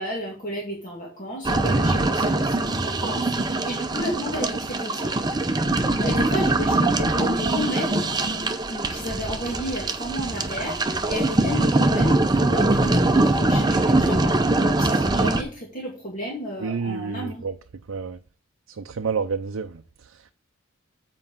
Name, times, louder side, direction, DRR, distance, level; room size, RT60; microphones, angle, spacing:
voice 1, 0.0-5.2 6.0-8.1 8.7-17.4, equal, 40° left, 2.3 m, -32 dB
sound 1, 1.4-15.4, right 2 dB, 20° right, 0.7 m, -22 dB
voice 2, 16.6-17.5 17.9-18.2 18.7-20.3, right 5 dB, 70° right, 0.5 m, -30 dB
7.7 x 4.7 x 7.2 m
head